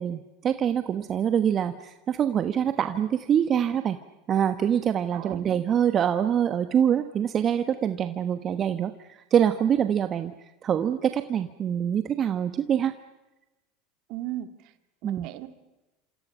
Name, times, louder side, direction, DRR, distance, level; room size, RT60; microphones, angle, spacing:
voice 1, 0.0-4.0 4.3-10.3 10.6-12.9 15.0-15.3, right 9 dB, 35° right, 10 dB, 1.1 m, -25 dB
voice 2, 5.1-5.6 14.1-14.7 15.0-15.5, right 14 dB, 55° right, 10 dB, 2.0 m, -37 dB
28.0 x 27.0 x 5.6 m, 1.0 s
hypercardioid pair, 80°, 0 cm